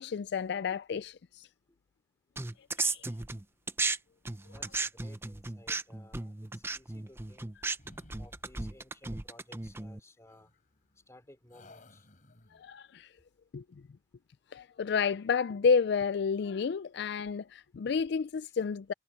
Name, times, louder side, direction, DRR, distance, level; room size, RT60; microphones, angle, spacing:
voice 1, 0.0-1.5 2.8-3.1 12.5-13.1 13.5-13.6 14.5-18.9, left 5 dB, 65° left, 0.4 m, -30 dB
sound 1, 2.4-4.0 4.2-10.0, right 3 dB, 15° right, 0.6 m, -35 dB
voice 2, 4.5-7.5 8.2-10.5 11.1-12.1 18.4-18.5, left 1 dB, 15° left, 2.9 m, -57 dB
sound 2, 6.6-7.5 7.8-8.9 10.3-11.1 11.5-12.7, left 1 dB, 45° left, 4.3 m, -58 dB
head